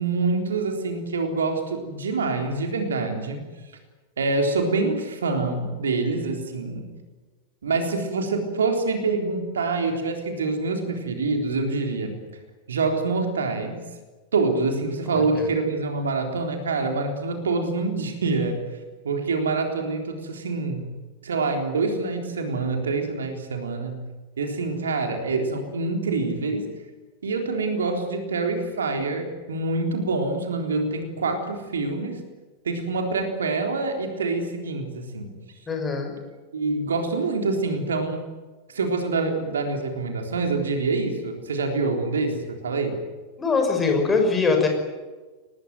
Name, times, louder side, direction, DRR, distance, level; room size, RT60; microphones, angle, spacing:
voice 1, 0.0-3.4 4.2-6.9 7.6-12.2 12.7-13.8 14.3-18.6 19.0-20.9 21.2-24.0 24.4-26.7 27.2-32.2 32.6-35.4 36.5-38.2 38.7-43.0, right 3 dB, 70° right, 4 dB, 3.8 m, -26 dB
voice 2, 15.1-15.5 35.7-36.1 43.4-44.7, left 4 dB, 15° left, 4 dB, 6.1 m, -22 dB
24.5 x 19.5 x 9.3 m, 1.3 s
figure-of-eight pair, 90°, 0 cm